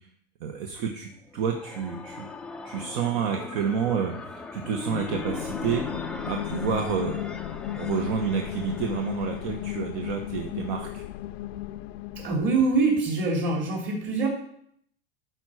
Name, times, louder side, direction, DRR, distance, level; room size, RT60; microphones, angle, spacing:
voice 1, 0.4-2.3 2.6-7.2 7.8-11.0, right 7 dB, 60° right, 4 dB, 1.2 m, -29 dB
sound 1, 1.1-10.0, left 3 dB, 5° left, 0.3 m, -39 dB
sound 2, 4.9-12.7, left 13 dB, 75° left, 0.5 m, -35 dB
voice 2, 12.2-14.3, right 3 dB, 35° right, 0 dB, 3.1 m, -24 dB
11.5 x 4.6 x 6.4 m, 0.68 s
supercardioid pair, 150°, 31 cm